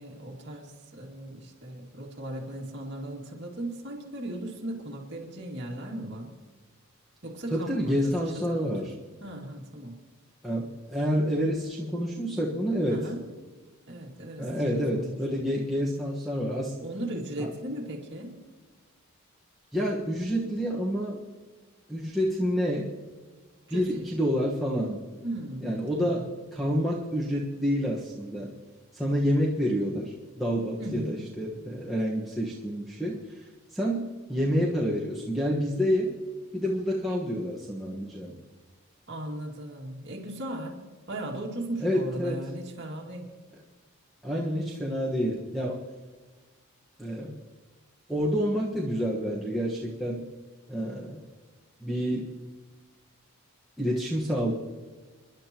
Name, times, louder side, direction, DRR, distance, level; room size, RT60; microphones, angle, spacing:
voice 1, 0.0-6.3 7.2-8.1 8.5-8.7 9.2-10.0 12.9-13.2 13.9-14.5 14.7-15.2 16.8-18.3 23.7-24.0 25.2-26.1 30.8-31.2 39.1-40.8 41.1-43.2, right 1 dB, 50° right, -1 dB, 2.3 m, -37 dB
voice 2, 7.5-8.9 10.4-13.1 14.4-16.7 17.4-17.5 19.7-21.2 21.9-22.9 23.7-25.0 25.6-28.5 28.9-36.2 36.5-38.4 41.8-42.4 44.2-45.8 47.0-47.4 48.1-50.3 50.7-51.2 51.8-52.3 53.8-54.5, equal, ahead, -6 dB, 1.4 m, -28 dB
28.5 x 11.0 x 3.0 m, 1.4 s
head